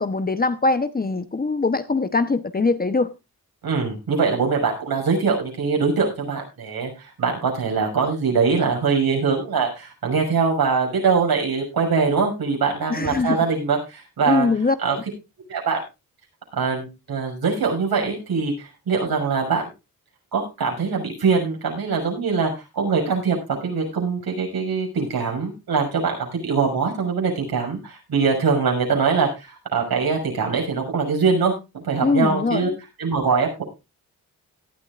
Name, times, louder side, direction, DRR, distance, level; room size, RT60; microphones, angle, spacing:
voice 1, 0.0-3.1 12.9-13.4 14.3-15.0 32.0-32.6, left 3 dB, 25° left, 12 dB, 0.9 m, -22 dB
voice 2, 3.6-14.5 14.8-15.0 15.5-15.8 16.6-19.6 20.3-23.4 23.6-32.7 33.0-33.6, right 5 dB, 75° right, 1 dB, 6.4 m, -22 dB
18.0 x 12.0 x 2.5 m, 0.26 s
wide cardioid pair, 110°, 37 cm